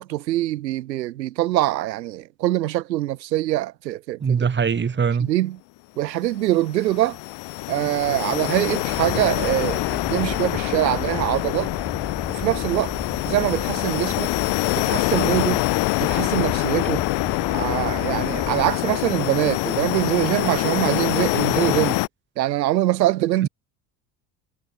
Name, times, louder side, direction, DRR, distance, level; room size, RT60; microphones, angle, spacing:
voice 1, 0.0-4.5 5.2-5.6 6.0-7.2 7.7-11.7 12.3-12.9 13.2-14.3 14.8-15.6 16.0-17.0 17.5-22.0 22.4-23.5, right 15 dB, 85° right, 1.7 m, -23 dB
voice 2, 4.2-5.3 23.4-23.5, right 6 dB, 20° right, 1.4 m, -22 dB
sound 1, 6.4-22.1, left 23 dB, 60° left, 1.3 m, -25 dB
sound 2, 8.9-18.7, equal, 5° left, 4.9 m, -36 dB
hypercardioid pair, 70°, 49 cm